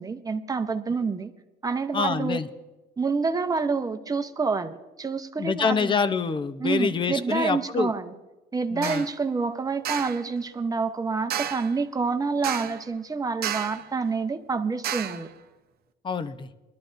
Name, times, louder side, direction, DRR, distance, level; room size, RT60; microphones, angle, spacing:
voice 1, 0.0-1.3 1.6-2.4 3.0-5.9 6.6-8.1 8.5-15.3, right 4 dB, 20° right, 8 dB, 0.8 m, -28 dB
voice 2, 1.9-2.5 5.4-7.9 8.7-9.1 16.0-16.5, left 5 dB, 30° left, 12 dB, 0.7 m, -26 dB
sound 1, 8.8-9.1 9.8-10.2 11.3-11.8 12.4-12.9 13.4-13.9 14.8-15.3, right 9 dB, 65° right, 0.8 m, -31 dB
21.0 x 12.5 x 2.6 m, 1.1 s
cardioid pair, 110°, 17 cm